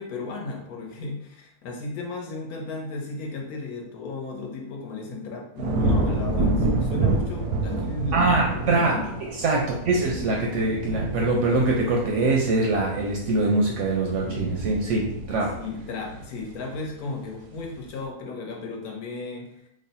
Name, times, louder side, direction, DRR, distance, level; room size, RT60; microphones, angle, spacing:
voice 1, 0.0-9.1 15.5-19.5, left 3 dB, 75° left, 0 dB, 1.2 m, -35 dB
sound 1, 5.6-16.9 17.3-17.8, right 2 dB, 85° right, 1.1 m, -29 dB
voice 2, 8.1-15.5, right 2 dB, 70° right, -1 dB, 0.7 m, -23 dB
3.2 x 2.1 x 4.0 m, 0.77 s
omnidirectional pair, 1.6 m